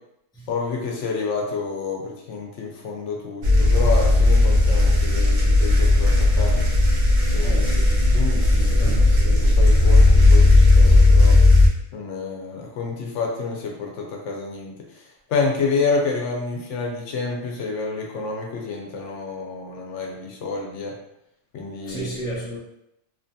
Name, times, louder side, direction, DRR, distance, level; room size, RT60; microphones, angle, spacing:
voice 1, 0.5-6.7 7.3-11.4 11.9-15.0 15.3-20.9 21.5-22.1, left 4 dB, 75° left, 0 dB, 0.9 m, -29 dB
sound 1, 3.4-11.7, left 2 dB, 50° right, 0.6 m, -15 dB
voice 2, 7.4-7.9 8.6-9.3 21.9-22.6, right 1 dB, 5° left, -7 dB, 0.5 m, -33 dB
2.8 x 2.6 x 2.2 m, 0.80 s
omnidirectional pair, 1.3 m